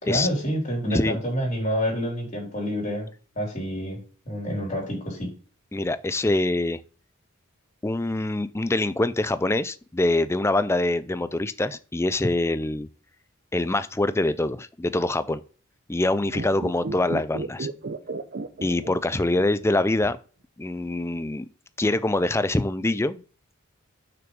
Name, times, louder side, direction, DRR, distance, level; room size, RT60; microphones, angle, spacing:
voice 1, 0.0-3.1 3.4-4.0 4.3-5.3, equal, 35° left, 3.8 m, -28 dB
voice 2, 5.7-6.8 7.8-12.9 13.5-15.4 15.9-17.7 18.6-20.2 20.6-21.5 21.8-23.2, left 2 dB, 10° left, 0.4 m, -24 dB
sound 1, 16.2-19.7 19.9-20.0, right 3 dB, 45° right, 0.6 m, -33 dB
6.2 x 6.0 x 5.3 m
head